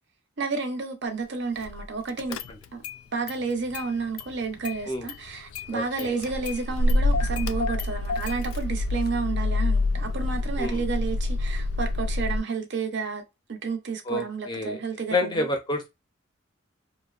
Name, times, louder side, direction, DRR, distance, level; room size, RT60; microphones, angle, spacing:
voice 1, 0.4-2.4 3.1-13.2 13.5-15.5, right 4 dB, 55° right, 0.5 m, -31 dB
Car / Engine starting, 1.6-1.9 2.2-3.0 3.3-4.3 4.6-12.4, left 2 dB, 90° left, 0.3 m, -27 dB
voice 2, 5.7-6.1 10.6-10.8 14.1-14.8 15.1-15.9, left 1 dB, 20° left, 0.5 m, -28 dB
2.6 x 2.1 x 2.3 m
head